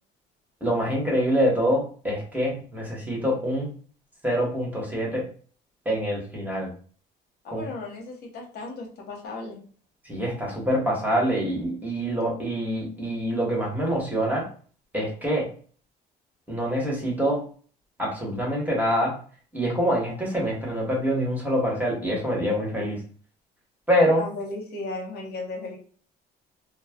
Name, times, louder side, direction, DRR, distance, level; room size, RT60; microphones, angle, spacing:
voice 1, 0.6-3.7 4.2-5.2 5.8-6.7 7.5-7.6 10.0-14.4 14.9-15.5 16.5-17.4 18.0-19.1 19.5-23.0 23.9-24.2, equal, 10° right, -3 dB, 1.1 m, -25 dB
voice 2, 7.4-9.6 24.2-25.8, left 3 dB, 70° left, 0 dB, 0.9 m, -35 dB
2.3 x 2.0 x 3.5 m, 0.43 s
cardioid pair, 110°, 17 cm